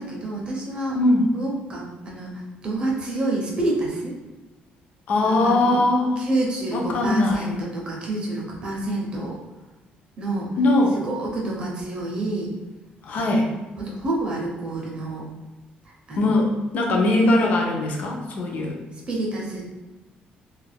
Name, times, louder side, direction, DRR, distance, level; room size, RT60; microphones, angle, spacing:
voice 1, 0.0-1.0 1.3-4.1 5.2-5.8 6.2-9.4 10.2-10.5 11.0-12.5 13.2-13.3 13.8-15.2 16.1-16.3 19.1-19.7, right 2 dB, 30° right, -2 dB, 0.5 m, -28 dB
voice 2, 0.9-1.3 5.1-6.2 6.7-7.5 10.6-11.0 13.0-13.5 16.2-18.8, left 2 dB, 50° left, 1 dB, 0.4 m, -20 dB
2.3 x 2.1 x 3.3 m, 1.2 s
cardioid pair, 175°, 3 cm